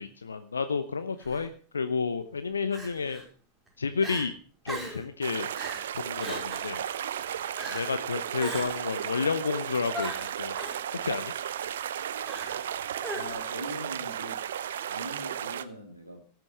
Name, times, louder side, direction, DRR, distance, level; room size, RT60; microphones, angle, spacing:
voice 1, 0.0-3.2 3.8-4.3 4.6-5.5 5.9-6.8 7.7-10.1 10.4-10.6 10.9-11.3, left 5 dB, 75° left, 10 dB, 0.9 m, -31 dB
Crying sobbing, 1.2-1.4 2.7-3.2 3.7-3.8 4.0-4.3 4.7-5.0 5.5-5.8 6.2-6.7 7.6-7.9 8.4-8.9 9.9-10.8 12.3-12.7 13.0-13.5, right 1 dB, 10° right, 5.1 m, -39 dB
sound 1, 5.2-15.6, right 10 dB, 60° right, 0.8 m, -34 dB
voice 2, 13.1-14.4 14.9-16.2, equal, 85° right, 1 dB, 2.2 m, -41 dB
17.5 x 7.7 x 6.5 m, 0.43 s
figure-of-eight pair, 90°, 0 cm